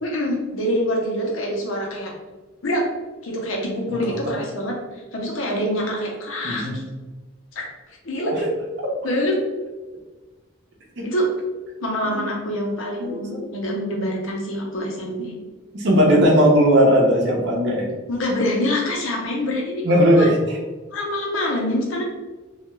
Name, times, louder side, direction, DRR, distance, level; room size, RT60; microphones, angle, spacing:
voice 1, 0.0-2.1 2.6-2.9 3.2-6.8 7.5-7.7 8.0-8.5 9.0-9.4 11.0-11.3 11.8-15.3 18.1-20.3 20.9-22.0, left 1 dB, 85° left, -1 dB, 0.7 m, -25 dB
voice 2, 6.4-6.8 11.0-11.1 12.0-12.2 13.0-13.4 15.7-17.9 19.8-20.4, equal, 60° right, -1 dB, 0.6 m, -17 dB
2.3 x 2.2 x 2.9 m, 1.2 s
head